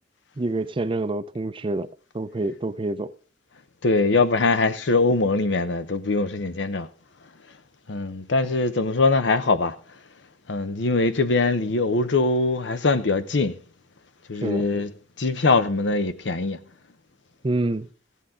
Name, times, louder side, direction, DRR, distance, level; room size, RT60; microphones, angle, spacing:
voice 1, 0.4-1.9 2.1-3.1 14.4-14.7 17.4-17.9, right 2 dB, 30° right, 0.5 m, -27 dB
voice 2, 3.8-6.9 7.9-9.7 10.5-13.5 14.3-14.9 15.2-16.6, left 3 dB, 75° left, 0.8 m, -22 dB
15.5 x 8.3 x 3.7 m
head